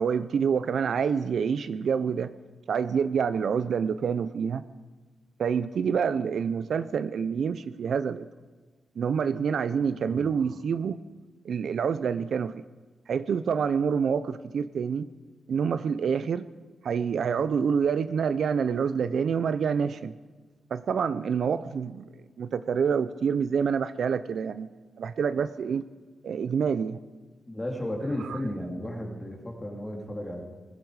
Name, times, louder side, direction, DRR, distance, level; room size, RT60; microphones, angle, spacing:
voice 1, 0.0-2.3 2.7-4.6 5.4-8.3 9.0-11.0 11.4-12.6 13.1-15.1 15.5-16.5 16.8-20.1 20.7-22.0 22.4-24.7 25.0-25.9 26.2-27.0 28.2-28.4, right 6 dB, 65° right, 13 dB, 0.5 m, -27 dB
voice 2, 27.5-30.4, left 1 dB, 15° left, 1 dB, 2.6 m, -34 dB
20.0 x 14.5 x 4.8 m, 1.3 s
wide cardioid pair, 155°, 0 cm